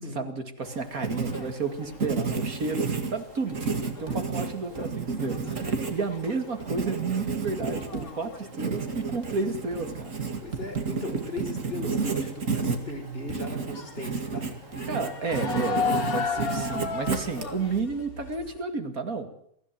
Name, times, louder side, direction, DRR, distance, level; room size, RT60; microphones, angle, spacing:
voice 1, 0.1-10.2 14.9-19.3, right 4 dB, 75° right, 7 dB, 2.7 m, -32 dB
Writing, 0.6-17.8, right 4 dB, 60° right, 2.6 m, -32 dB
sound 1, 0.8-3.2 3.5-8.5 8.8-9.3 9.7-10.2 11.9-12.2 12.7-12.8 13.7-18.6, left 5 dB, 85° left, 2.7 m, -36 dB
voice 2, 10.4-14.5, left 1 dB, 40° left, 3 dB, 4.9 m, -37 dB
23.0 x 15.0 x 9.2 m, 0.68 s
omnidirectional pair, 1.5 m